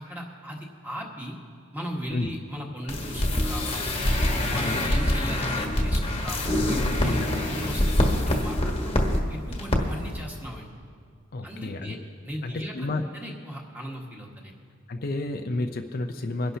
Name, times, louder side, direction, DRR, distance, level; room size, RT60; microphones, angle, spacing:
voice 1, 0.0-1.4 1.7-3.9 4.5-7.2 7.4-8.9 9.3-10.7 11.4-12.0 12.2-12.9 13.1-14.5, equal, 10° right, -1 dB, 1.6 m, -37 dB
sound 1, 2.9-9.2 9.5-9.8 10.1-10.2, left 1 dB, 30° left, 1.3 m, -25 dB
voice 2, 4.5-4.9 7.0-7.3 11.3-12.0 12.4-13.0 14.9-16.6, left 2 dB, 45° left, 5 dB, 0.5 m, -31 dB
22.5 x 11.0 x 2.8 m, 2.2 s
head